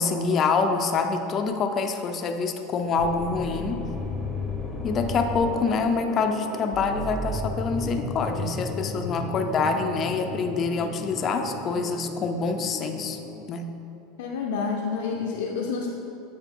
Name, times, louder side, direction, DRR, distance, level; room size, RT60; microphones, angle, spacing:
voice 1, 0.0-3.8 4.8-13.2 13.5-13.7, left 4 dB, 35° left, 5 dB, 0.5 m, -26 dB
sound 1, 3.0-13.4, left 2 dB, 10° left, 0.8 m, -34 dB
voice 2, 14.2-15.9, left 5 dB, 80° left, -2 dB, 0.6 m, -28 dB
8.1 x 4.9 x 3.7 m, 2.8 s
supercardioid pair, 130°, 0 cm